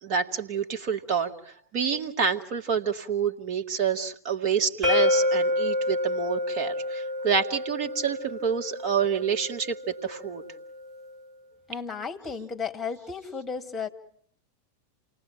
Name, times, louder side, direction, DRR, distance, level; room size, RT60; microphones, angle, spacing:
voice 1, 0.0-1.3 1.7-9.8 10.0-10.4, right 6 dB, 40° right, 5 dB, 1.8 m, -28 dB
sound 1, 4.8-10.6, left 2 dB, 20° right, 2.8 m, -28 dB
voice 2, 11.7-13.9, left 5 dB, 15° left, 5 dB, 2.0 m, -34 dB
29.0 x 19.0 x 8.9 m, 0.64 s
figure-of-eight pair, 90°, 0 cm